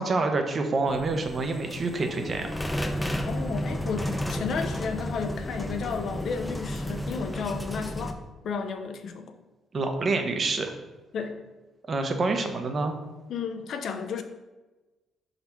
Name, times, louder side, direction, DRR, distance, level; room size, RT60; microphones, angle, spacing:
voice 1, 0.0-2.6 9.7-10.7 11.9-13.0, right 3 dB, 40° right, 5 dB, 0.8 m, -27 dB
sound 1, 0.9-8.1, left 1 dB, 10° left, 0.6 m, -32 dB
voice 2, 3.2-9.4 11.1-11.4 13.3-14.2, left 5 dB, 65° left, 7 dB, 0.6 m, -33 dB
5.5 x 4.0 x 4.5 m, 1.2 s
cardioid pair, 90°, 0 cm